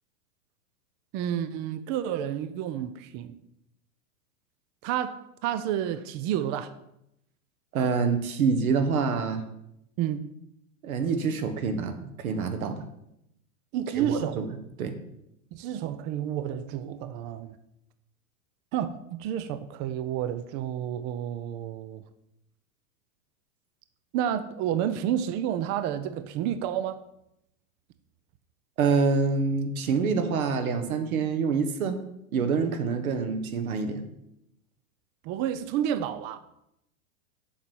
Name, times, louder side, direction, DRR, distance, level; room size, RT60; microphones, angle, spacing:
voice 1, 1.1-3.4 4.8-6.7 10.0-10.3 13.7-14.4 15.5-17.5 18.7-22.0 24.1-27.0 35.2-36.4, right 10 dB, 30° right, 11 dB, 0.4 m, -30 dB
voice 2, 7.7-9.4 10.8-12.8 14.0-14.5 14.8-14.9 28.8-32.0 32.3-34.0, right 5 dB, 75° right, 9 dB, 1.4 m, -26 dB
7.2 x 4.6 x 6.9 m, 0.80 s
hypercardioid pair, 120°, 42 cm